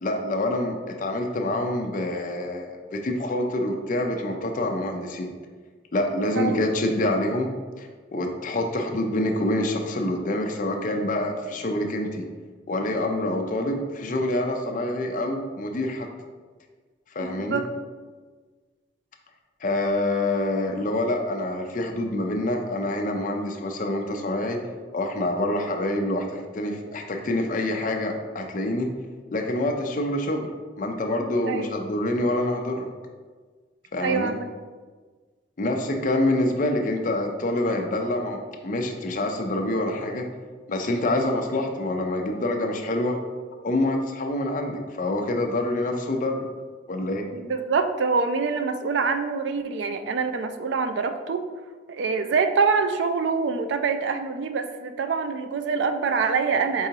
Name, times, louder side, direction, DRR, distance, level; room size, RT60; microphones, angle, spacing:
voice 1, 0.0-5.3 5.9-7.5 7.8-12.3 12.7-16.1 17.1-17.6 19.6-24.6 24.9-28.9 29.3-30.5 30.8-32.9 33.9-34.3 35.6-40.3 40.7-43.2 43.6-46.4 46.9-47.2, left 1 dB, 45° left, 3 dB, 0.5 m, -26 dB
voice 2, 17.2-17.7 31.5-31.7 34.0-34.5 47.3-51.5 51.9-56.9, right 5 dB, 70° right, 8 dB, 0.3 m, -25 dB
4.6 x 3.8 x 2.8 m, 1.4 s
head